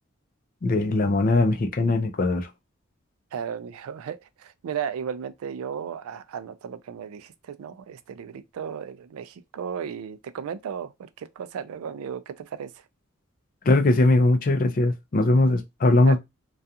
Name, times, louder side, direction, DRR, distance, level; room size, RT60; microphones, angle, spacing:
voice 1, 0.6-2.5 13.7-16.2, left 2 dB, 40° left, 0.4 m, -20 dB
voice 2, 3.3-12.8 16.1-16.2, right 7 dB, 85° right, 0.3 m, -35 dB
2.3 x 2.3 x 2.7 m
head